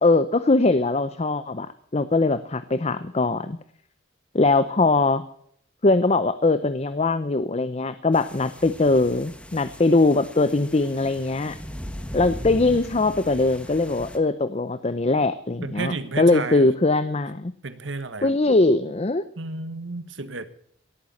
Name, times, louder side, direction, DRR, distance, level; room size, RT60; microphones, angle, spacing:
voice 1, 0.0-3.6 4.3-5.2 5.8-11.6 12.1-17.5 18.2-19.3, left 3 dB, 35° left, 13 dB, 0.6 m, -21 dB
sound 1, 8.1-14.2, equal, 5° left, 1.4 m, -38 dB
voice 2, 15.6-16.7 17.6-18.3 19.4-20.5, right 3 dB, 80° right, 12 dB, 1.4 m, -32 dB
17.5 x 9.3 x 7.2 m, 0.66 s
head